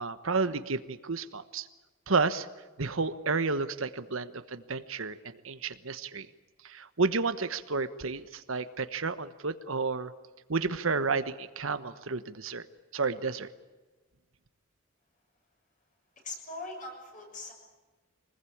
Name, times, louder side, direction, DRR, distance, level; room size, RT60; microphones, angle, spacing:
voice 1, 0.0-1.7 2.1-2.5 2.8-6.3 6.6-10.1 10.5-12.6 12.9-13.5, right 4 dB, 75° right, 11 dB, 1.2 m, -31 dB
voice 2, 16.2-17.5, left 2 dB, 40° left, 3 dB, 6.9 m, -41 dB
24.5 x 20.0 x 8.7 m, 1.2 s
head